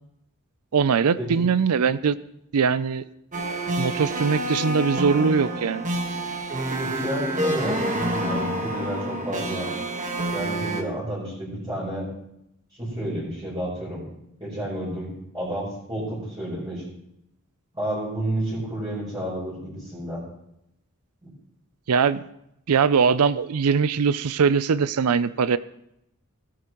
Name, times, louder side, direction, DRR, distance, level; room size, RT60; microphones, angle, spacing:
voice 1, 0.7-2.2 2.5-3.0 3.8-5.9 21.9-22.2 22.7-25.6, right 6 dB, 85° right, 16 dB, 0.5 m, -21 dB
sound 1, 3.3-10.8, right 1 dB, 35° right, 1.5 m, -28 dB
voice 2, 6.9-9.7 10.3-12.1 12.8-14.0 14.4-16.8 17.7-20.2 21.2-21.3, right 1 dB, 20° right, -9 dB, 4.6 m, -30 dB
17.0 x 9.5 x 3.0 m, 0.79 s
head